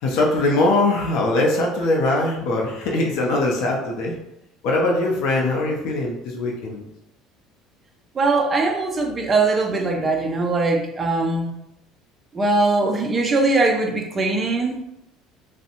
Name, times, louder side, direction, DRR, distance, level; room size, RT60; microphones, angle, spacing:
voice 1, 0.0-4.2 4.6-6.9, left 2 dB, 55° left, 0 dB, 0.4 m, -21 dB
voice 2, 8.2-11.5 12.3-14.8, right 3 dB, 15° right, 2 dB, 0.3 m, -21 dB
2.6 x 2.0 x 2.7 m, 0.86 s
cardioid pair, 175°, 0 cm